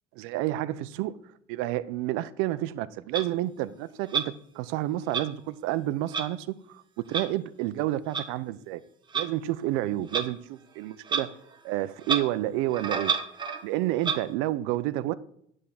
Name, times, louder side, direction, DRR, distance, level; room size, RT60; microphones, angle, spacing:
voice 1, 0.2-1.2 1.5-6.8 7.1-8.8 9.1-11.3 11.6-13.2 13.6-15.1, right 15 dB, 90° right, 0.5 m, -30 dB
Clock, 3.1-3.2 4.1-4.3 5.1-5.2 6.1-6.3 7.1-7.2 8.1-8.2 9.1-9.3 10.1-10.3 11.0-11.2 11.5-11.6 12.0-12.2 12.7-13.6 14.0-14.2, right 6 dB, 20° right, 1.0 m, -28 dB
9.6 x 3.6 x 6.9 m
cardioid pair, 145°, 20 cm